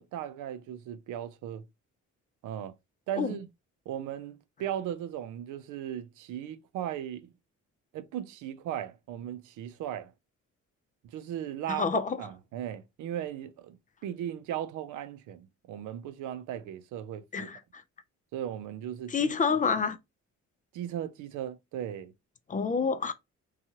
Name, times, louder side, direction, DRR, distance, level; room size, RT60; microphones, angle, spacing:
voice 1, 0.0-1.6 2.4-2.7 3.1-3.5 3.9-7.3 7.9-10.1 11.0-13.8 14.0-17.5 18.3-19.3 20.7-22.1, right 10 dB, 85° right, 0.5 m, -37 dB
voice 2, 11.7-12.2 17.3-17.8 19.1-20.0 22.5-23.1, left 5 dB, 25° left, 0.3 m, -28 dB
2.7 x 2.3 x 2.7 m
cardioid pair, 90°, 30 cm